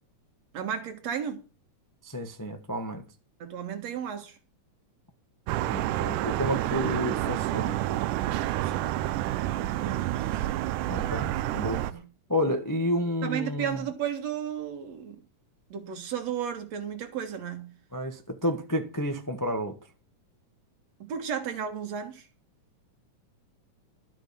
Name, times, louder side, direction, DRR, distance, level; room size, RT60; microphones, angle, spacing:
voice 1, 0.5-1.4 3.4-4.4 8.5-10.1 11.9-12.1 13.2-15.2 15.7-17.7 21.0-22.3, right 8 dB, 60° right, 2.7 m, -34 dB
voice 2, 2.0-3.0 5.7-7.8 10.9-12.0 12.3-13.8 17.9-19.8, equal, 25° left, 0.4 m, -30 dB
sound 1, 5.5-11.9, right 14 dB, 90° right, 2.3 m, -29 dB
13.0 x 6.4 x 6.9 m
omnidirectional pair, 3.6 m